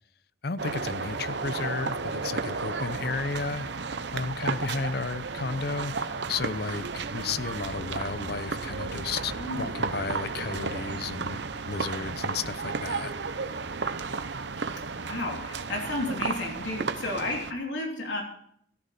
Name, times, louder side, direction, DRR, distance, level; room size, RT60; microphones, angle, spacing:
voice 1, 0.4-3.7 4.1-11.4 11.7-13.1, left 4 dB, 55° left, 0.6 m, -33 dB
sound 1, 0.6-17.5, right 4 dB, 65° right, 0.8 m, -33 dB
voice 2, 9.1-9.8 15.0-18.2, left 2 dB, 80° left, 3.0 m, -32 dB
14.5 x 13.0 x 4.3 m
head